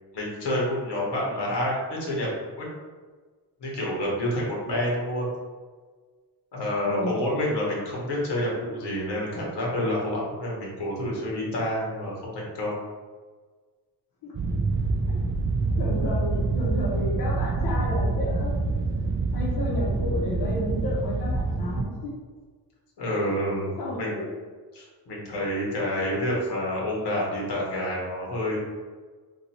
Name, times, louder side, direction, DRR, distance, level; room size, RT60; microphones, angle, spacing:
voice 1, 0.1-2.3 2.6-2.7 3.6-5.3 6.5-12.8 23.0-24.2 24.7-28.6, left 1 dB, 80° left, -4 dB, 1.3 m, -28 dB
voice 2, 6.8-7.2 14.2-14.3 15.1-15.2 15.8-18.8 19.3-22.1 23.2-23.4 23.8-24.3, left 1 dB, 65° left, -6 dB, 1.0 m, -32 dB
sound 1, 14.3-21.8, right 3 dB, 30° right, 0.4 m, -26 dB
2.8 x 2.6 x 4.2 m, 1.4 s
cardioid pair, 70°, 41 cm